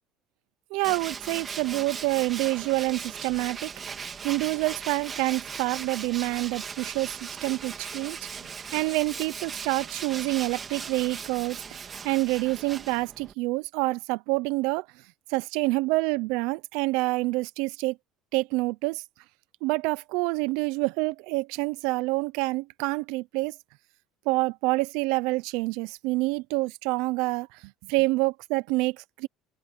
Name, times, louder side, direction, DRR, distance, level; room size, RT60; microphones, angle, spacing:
voice 1, 0.7-3.7 4.2-8.2 8.7-14.8 15.3-18.0 18.3-19.0 19.6-23.5 24.3-27.6 27.9-29.3, right 23 dB, 75° right, 0.6 m, -27 dB
Tools, 0.8-13.3, right 6 dB, 30° right, 2.7 m, -38 dB
open air
supercardioid pair, 100°, 0 cm